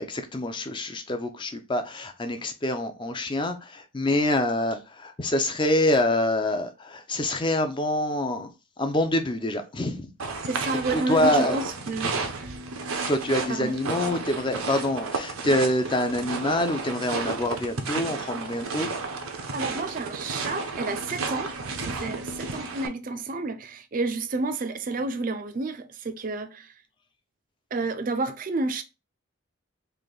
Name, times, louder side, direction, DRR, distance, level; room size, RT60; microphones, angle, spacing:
voice 1, 0.0-8.5 8.8-10.1 10.9-11.6 13.1-18.9, left 1 dB, 25° left, 0.4 m, -26 dB
sound 1, 10.2-22.9, right 4 dB, 85° right, 0.7 m, -32 dB
voice 2, 10.5-12.6 13.5-13.8 19.5-21.5 21.8-26.7 27.7-28.8, right 2 dB, 40° right, 0.4 m, -30 dB
3.3 x 2.5 x 3.8 m
head